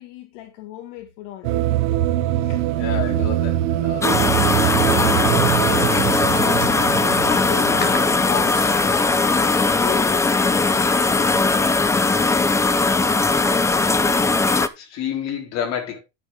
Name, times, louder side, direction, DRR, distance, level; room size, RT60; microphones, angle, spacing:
voice 1, 0.0-1.8 2.3-2.6 6.1-11.6, left 11 dB, 70° left, 1.9 m, -36 dB
sound 1, 1.4-9.7, right 13 dB, 70° right, 1.0 m, -23 dB
voice 2, 2.7-4.2 7.6-7.9 14.5-16.0, left 9 dB, 45° left, 4.7 m, -30 dB
sound 2, 4.0-14.7, left 3 dB, 10° left, 0.5 m, -19 dB
sound 3, 4.9-10.0, left 6 dB, 25° left, 4.0 m, -35 dB
11.5 x 7.1 x 3.6 m
supercardioid pair, 135°, 37 cm